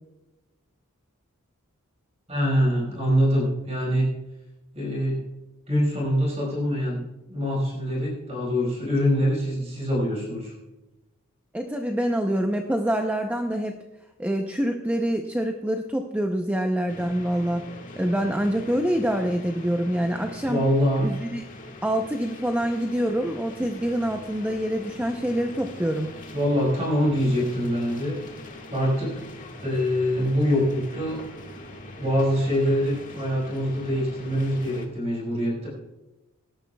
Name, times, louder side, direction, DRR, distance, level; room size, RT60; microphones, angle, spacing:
voice 1, 2.3-4.1 4.7-5.2 5.7-10.5 20.5-21.1 26.3-28.4 28.7-29.3 29.6-31.2 32.0-35.7, equal, 30° right, -3 dB, 5.1 m, -24 dB
voice 2, 11.5-13.8 14.2-17.7 18.0-20.7 21.0-21.4 21.8-26.1, equal, 5° right, 4 dB, 0.6 m, -26 dB
sound 1, 16.9-34.9, left 1 dB, 35° left, 1.7 m, -42 dB
18.5 x 13.0 x 2.3 m, 1.0 s
head